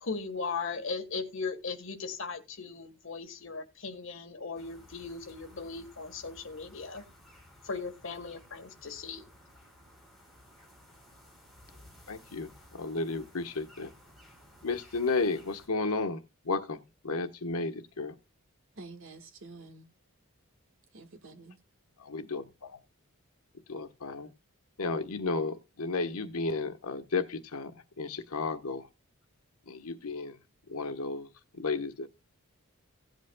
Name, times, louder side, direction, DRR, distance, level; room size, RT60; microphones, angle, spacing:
voice 1, 0.0-7.0 7.6-9.2, left 4 dB, 60° left, 1.5 m, -38 dB
sound 1, 4.5-15.7, left 1 dB, ahead, 3.9 m, -56 dB
voice 2, 12.1-13.9 14.6-18.2 22.0-22.8 23.7-24.3 24.8-27.7 28.0-28.9 29.7-30.4 30.7-32.1, left 3 dB, 90° left, 1.3 m, -33 dB
voice 3, 18.8-19.9 20.9-21.6, right 3 dB, 65° right, 1.6 m, -48 dB
17.0 x 8.3 x 2.3 m
head